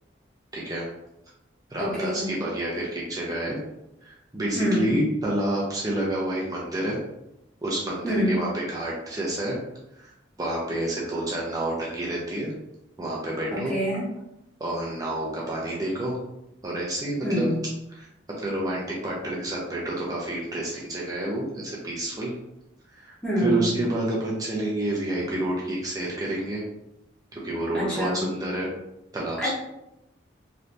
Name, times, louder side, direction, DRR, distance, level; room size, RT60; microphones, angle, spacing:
voice 1, 0.5-0.9 1.7-3.6 4.0-7.0 7.6-9.6 10.0-10.1 10.4-12.5 13.0-13.7 14.6-16.2 16.6-17.5 17.9-18.1 18.4-22.3 22.9-26.6 27.3-28.7 29.1-29.5, right 1 dB, 20° right, -4 dB, 0.5 m, -29 dB
voice 2, 1.8-2.4 4.5-5.0 8.0-8.4 13.5-14.0 17.2-17.6 23.2-23.8 27.7-28.3 29.4-29.5, equal, 5° left, -10 dB, 0.9 m, -26 dB
3.2 x 2.7 x 2.6 m, 0.87 s
head